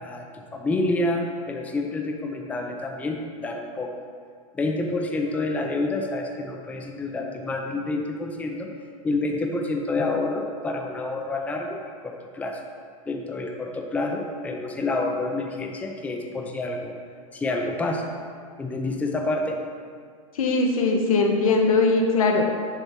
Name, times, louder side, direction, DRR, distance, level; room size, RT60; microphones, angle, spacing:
voice 1, 0.5-3.9 4.5-8.7 9.0-12.6 13.1-17.0 17.3-18.0 18.6-19.6, left 2 dB, 10° left, 2 dB, 0.5 m, -28 dB
voice 2, 20.3-22.4, left 3 dB, 85° left, 2 dB, 0.9 m, -20 dB
6.8 x 3.0 x 5.8 m, 2.1 s
hypercardioid pair, 130°, 18 cm